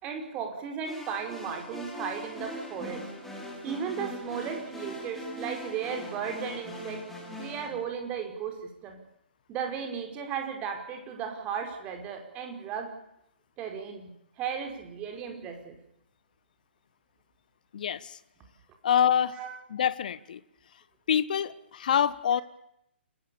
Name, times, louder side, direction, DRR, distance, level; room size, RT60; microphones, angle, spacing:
voice 1, 0.0-3.1 3.6-7.0 7.4-9.0 9.5-12.9 13.6-15.8 19.4-19.6, right 7 dB, 20° right, 4 dB, 4.9 m, -35 dB
sound 1, 0.8-7.7, left 1 dB, 5° left, 6.4 m, -41 dB
voice 2, 17.7-18.2 18.8-19.4 19.7-20.4 21.1-22.4, left 9 dB, 45° left, 17 dB, 1.3 m, -26 dB
29.5 x 21.0 x 7.0 m, 0.78 s
figure-of-eight pair, 130°, 6 cm